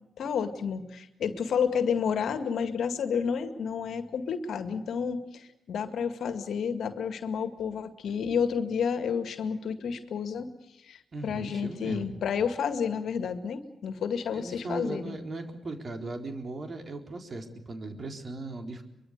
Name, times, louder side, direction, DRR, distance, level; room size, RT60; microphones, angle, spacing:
voice 1, 0.2-10.5 10.9-15.2, left 6 dB, 65° left, 10 dB, 2.0 m, -30 dB
voice 2, 11.1-12.1 14.3-18.8, right 2 dB, 45° right, 5 dB, 4.0 m, -38 dB
23.5 x 23.5 x 6.7 m, 0.89 s
hypercardioid pair, 40°, 0 cm